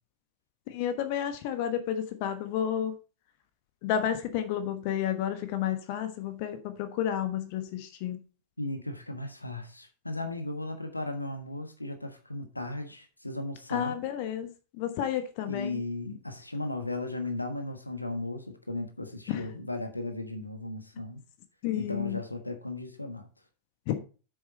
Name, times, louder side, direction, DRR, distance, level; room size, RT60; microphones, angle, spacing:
voice 1, 0.7-2.9 3.8-8.2 13.7-14.5 14.8-15.8 19.3-19.4 21.6-22.2 23.9-24.0, left 10 dB, 45° left, 1.1 m, -31 dB
voice 2, 8.6-14.0 15.4-21.2 21.7-23.3, left 2 dB, 85° left, 1.4 m, -36 dB
8.6 x 6.6 x 4.2 m
figure-of-eight pair, 90°, 0 cm